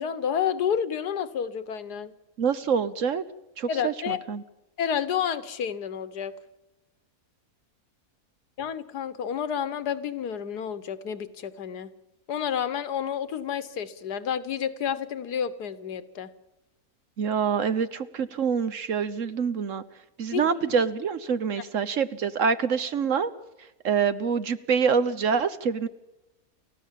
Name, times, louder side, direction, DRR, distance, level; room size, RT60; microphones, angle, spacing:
voice 1, 0.0-2.1 3.7-4.2 4.8-6.3 8.6-11.9 12.3-16.3 20.3-20.5 21.5-21.6, left 8 dB, 80° left, 13 dB, 1.7 m, -30 dB
voice 2, 2.4-3.2 3.6-4.4 17.2-19.8 20.2-23.3 23.8-25.9, right 6 dB, 55° right, 13 dB, 1.2 m, -26 dB
29.0 x 15.0 x 7.5 m, 1.0 s
omnidirectional pair, 1.7 m